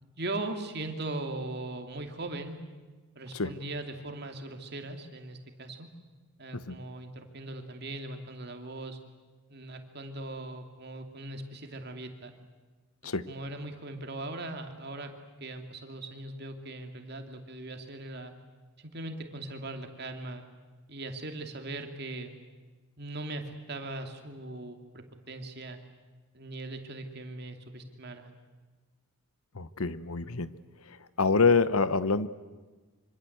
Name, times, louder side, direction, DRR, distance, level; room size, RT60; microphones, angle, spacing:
voice 1, 0.0-2.6 3.2-5.9 6.4-9.0 9.5-12.3 13.0-18.3 18.8-20.4 20.9-22.3 23.0-25.8 26.3-28.3, right 2 dB, 45° right, 5 dB, 2.6 m, -39 dB
voice 2, 29.5-30.5 31.2-32.3, left 4 dB, 75° left, 15 dB, 1.0 m, -26 dB
26.0 x 25.0 x 8.1 m, 1.3 s
head